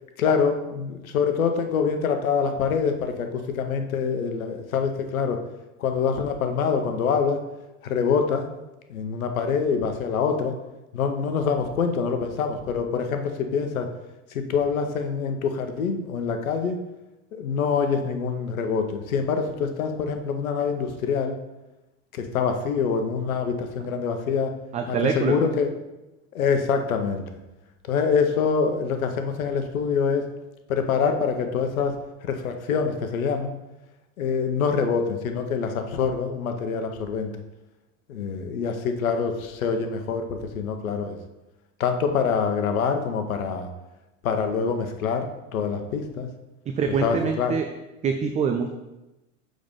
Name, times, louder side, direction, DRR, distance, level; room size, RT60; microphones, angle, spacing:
voice 1, 0.2-5.4 5.8-7.4 7.8-8.5 8.9-10.5 10.9-13.9 14.3-16.8 17.3-21.4 22.1-24.5 24.9-25.7 26.3-27.2 27.9-30.3 30.7-33.6 34.2-37.3 38.1-41.2 41.8-43.7 44.2-46.3 47.0-47.5, left 6 dB, 85° left, 6 dB, 1.0 m, -25 dB
voice 2, 24.7-25.3 46.7-47.7 48.0-48.7, right 6 dB, 20° right, 5 dB, 0.4 m, -24 dB
6.6 x 3.9 x 5.4 m, 1.0 s
hypercardioid pair, 100°, 41 cm